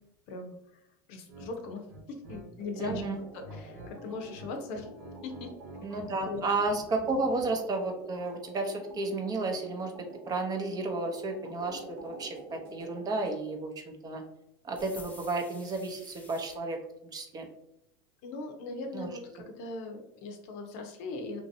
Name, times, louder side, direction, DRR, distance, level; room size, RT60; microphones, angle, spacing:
voice 1, 1.1-3.0 3.3-4.9 5.2-5.5 5.9-6.4 18.2-21.4, left 3 dB, 65° left, 4 dB, 0.6 m, -39 dB
sound 1, 1.3-1.5 1.9-3.0 3.3-3.9 4.2-6.1, right 1 dB, 70° right, 1.1 m, -47 dB
sound 2, 2.6-13.4, right 1 dB, 85° right, 1.4 m, -48 dB
voice 2, 2.8-3.2 5.8-9.9 10.3-13.7 14.0-14.2 14.6-16.8 17.1-17.5 18.9-19.1, right 3 dB, 30° right, 3 dB, 0.6 m, -32 dB
sound 3, 14.7-16.6, left 3 dB, 10° left, 0.5 m, -51 dB
3.0 x 2.7 x 2.6 m, 0.80 s
supercardioid pair, 105°, 12 cm